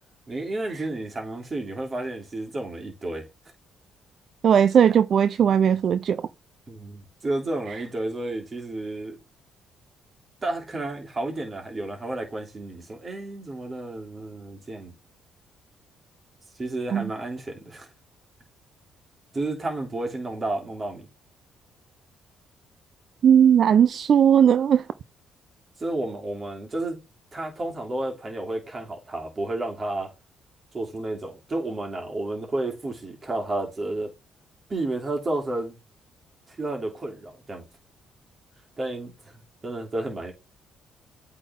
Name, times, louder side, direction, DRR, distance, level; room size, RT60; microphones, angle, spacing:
voice 1, 0.3-3.3 5.4-5.6 6.7-9.2 10.4-14.9 16.5-17.9 19.3-21.1 25.8-27.0 27.3-30.1 30.7-34.1 34.7-35.8 36.5-37.6 38.8-40.3, right 2 dB, 30° right, 3.0 m, -31 dB
voice 2, 4.4-6.2 16.9-17.1 23.2-24.8, right 8 dB, 55° right, 0.5 m, -18 dB
8.3 x 3.9 x 3.7 m
cardioid pair, 95°, 0 cm